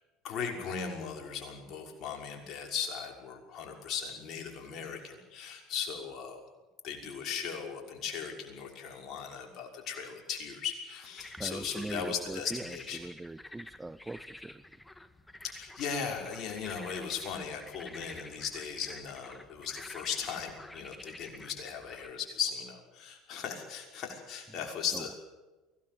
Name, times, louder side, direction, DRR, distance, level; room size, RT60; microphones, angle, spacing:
voice 1, 0.2-6.4 6.8-13.0 15.4-25.2, left 6 dB, 55° left, 2 dB, 6.0 m, -38 dB
sound 1, 11.2-22.1, left 1 dB, 10° left, 1.8 m, -50 dB
voice 2, 11.4-14.6 24.9-25.0, right 2 dB, 10° right, 16 dB, 0.8 m, -41 dB
24.0 x 18.0 x 7.9 m, 1.2 s
hypercardioid pair, 75°, 0 cm